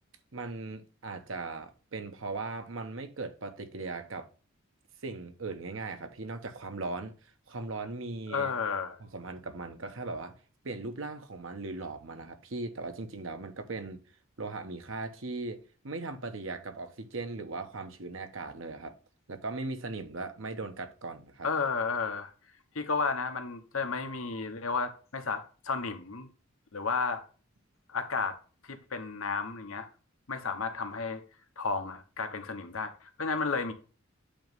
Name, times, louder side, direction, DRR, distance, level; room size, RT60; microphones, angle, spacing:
voice 1, 0.3-4.3 5.0-7.1 7.5-8.5 9.0-10.4 10.6-14.0 14.4-15.6 15.8-18.9 19.3-21.5, right 3 dB, 65° right, 1.1 m, -38 dB
voice 2, 8.3-9.0 21.4-22.3 22.7-26.3 26.7-27.2 27.9-28.4 28.6-29.9 30.3-31.2 31.6-33.7, left 4 dB, 80° left, 1.2 m, -32 dB
8.7 x 3.1 x 5.3 m
head